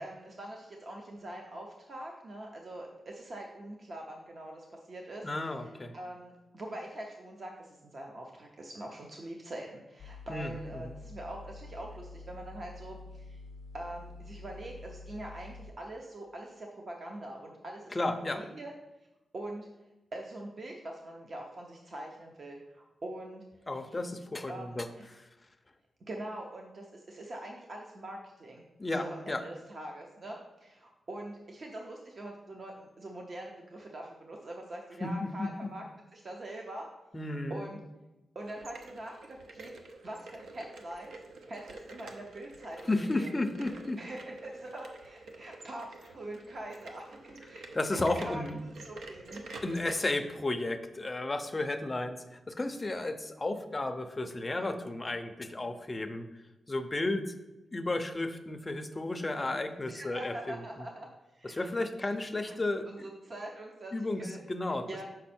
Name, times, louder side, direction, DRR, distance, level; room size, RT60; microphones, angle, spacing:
voice 1, 0.0-13.4 13.7-18.7 19.3-19.7 20.1-23.4 24.5-25.1 26.1-35.8 36.1-36.9 37.2-37.8 38.3-41.1 41.5-43.3 44.0-47.6 47.9-49.5 59.9-61.1 61.3-61.7 62.0-62.6 62.9-64.4 64.9-65.0, right 1 dB, 40° right, 1 dB, 0.6 m, -43 dB
voice 2, 5.2-5.9 10.3-10.9 17.9-18.4 23.7-24.9 25.1-25.3 28.8-29.4 35.0-35.7 37.1-37.7 42.9-44.0 47.7-48.6 49.6-52.2 52.5-56.3 56.7-57.4 57.7-60.6 61.4-63.1 63.9-64.9, left 2 dB, 20° left, 7 dB, 0.5 m, -33 dB
sound 1, 10.0-15.7, left 3 dB, 85° left, 0.4 m, -48 dB
sound 2, 38.4-49.9, right 3 dB, 90° right, 0.7 m, -48 dB
6.2 x 5.4 x 4.3 m, 1.0 s
wide cardioid pair, 170°, 0 cm